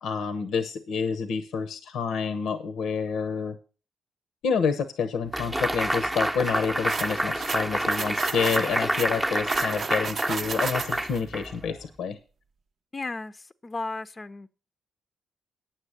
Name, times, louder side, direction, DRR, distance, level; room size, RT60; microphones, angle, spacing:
voice 1, 0.0-3.6 4.4-12.2, left 6 dB, 75° left, 0.9 m, -28 dB
sound 1, 5.3-11.8, right 1 dB, 10° right, 0.8 m, -28 dB
sound 2, 6.9-11.2, right 5 dB, 55° right, 0.6 m, -34 dB
voice 2, 12.9-14.5, left 3 dB, 30° left, 0.6 m, -35 dB
9.2 x 7.4 x 6.5 m
supercardioid pair, 55°, 0 cm